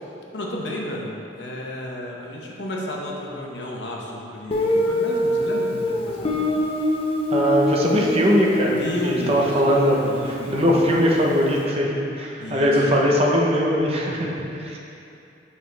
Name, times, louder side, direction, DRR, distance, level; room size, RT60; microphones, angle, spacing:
voice 1, 0.3-6.5 8.8-10.6 12.4-12.8, left 1 dB, 90° left, -2 dB, 1.0 m, -32 dB
Guitar, 4.5-11.2, left 1 dB, 30° left, 0.6 m, -25 dB
voice 2, 7.3-10.0 10.5-14.8, equal, 35° right, -2 dB, 0.8 m, -20 dB
7.2 x 5.7 x 3.4 m, 2.7 s
head